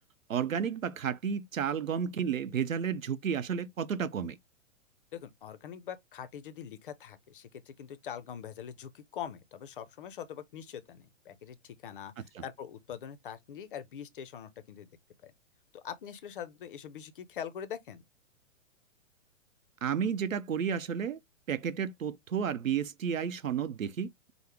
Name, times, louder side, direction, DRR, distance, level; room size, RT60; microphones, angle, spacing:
voice 1, 0.3-4.4 12.4-12.5 19.8-21.2 21.5-24.3, right 7 dB, 80° right, 0.6 m, -32 dB
voice 2, 5.1-14.9 15.2-15.3 15.7-18.0, left 8 dB, 45° left, 0.5 m, -43 dB
4.4 x 2.0 x 3.3 m
figure-of-eight pair, 115°, 39 cm